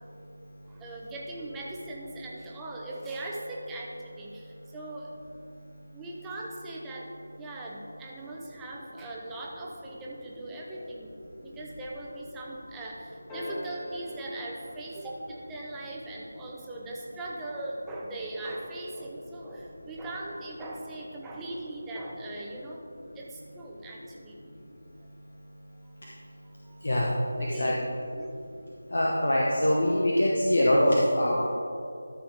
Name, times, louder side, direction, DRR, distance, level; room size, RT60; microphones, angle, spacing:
voice 1, 0.6-5.1 5.9-7.1 7.4-11.2 11.4-22.8 23.1-24.4 26.6-26.8 27.4-27.7 28.2-28.4, right 1 dB, 10° right, -4 dB, 0.8 m, -40 dB
sound 1, 13.3-15.8 18.0-18.1, equal, 15° left, 1.7 m, -41 dB
voice 2, 28.9-31.5, left 1 dB, 65° left, -4 dB, 1.2 m, -23 dB
12.5 x 6.1 x 3.5 m, 2.5 s
figure-of-eight pair, 165°, 0 cm